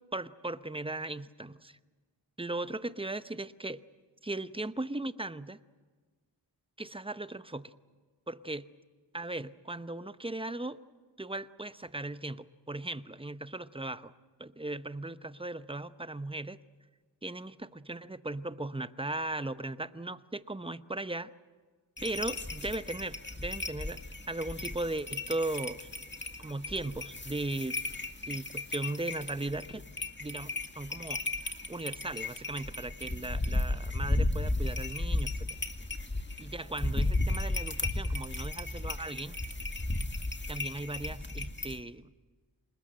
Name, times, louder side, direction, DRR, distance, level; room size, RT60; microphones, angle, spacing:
voice 1, 0.1-1.8 2.4-3.8 4.2-5.6 6.8-7.7 8.3-8.6 9.1-10.8 11.2-14.1 14.4-16.6 17.2-21.3 22.0-24.0 24.3-25.9 26.4-27.8 28.3-29.8 30.2-31.2 31.7-35.6 36.4-39.4 40.5-42.1, right 2 dB, 15° right, 13 dB, 0.9 m, -37 dB
sound 1, 22.0-41.8, left 2 dB, 25° left, 2.0 m, -35 dB
27.0 x 20.0 x 7.8 m, 1.4 s
cardioid pair, 40°, 42 cm